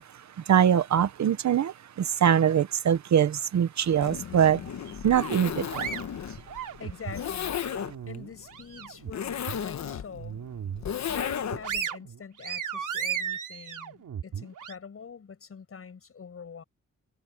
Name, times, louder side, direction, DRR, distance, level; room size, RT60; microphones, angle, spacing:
voice 1, 0.0-4.6 5.0-6.0, right 9 dB, 65° right, 0.9 m, -23 dB
Zipper (clothing), 3.9-11.8, left 8 dB, 65° left, 1.2 m, -34 dB
sound 1, 5.2-7.2 7.6-9.1 9.5-9.6 10.1-10.9 11.3-14.7, right 8 dB, 80° right, 3.2 m, -35 dB
voice 2, 6.8-10.4 11.1-16.6, left 6 dB, 45° left, 6.0 m, -44 dB
wide cardioid pair, 165°, 31 cm